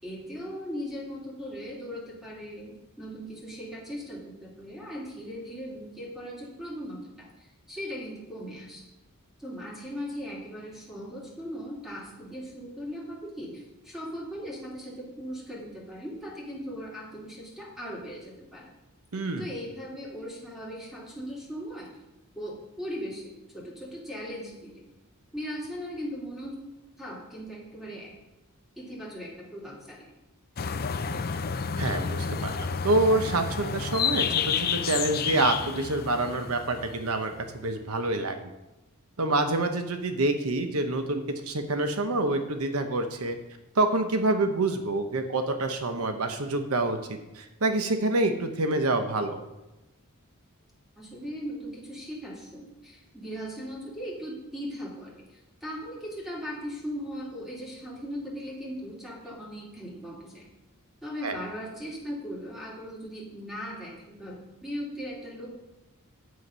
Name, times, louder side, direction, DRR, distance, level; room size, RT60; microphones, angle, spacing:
voice 1, 0.0-8.8 9.4-18.7 19.4-21.9 22.3-24.9 25.3-26.6 27.0-28.1 28.8-30.1 51.0-60.5 61.0-65.6, equal, ahead, -4 dB, 3.1 m, -38 dB
voice 2, 19.1-19.5 31.8-38.5 39.2-43.4 43.7-49.4 61.2-61.4, right 2 dB, 85° right, 7 dB, 1.0 m, -27 dB
sound 1, 30.6-37.7, left 6 dB, 45° left, 0.5 m, -30 dB
9.5 x 7.9 x 5.5 m, 0.99 s
head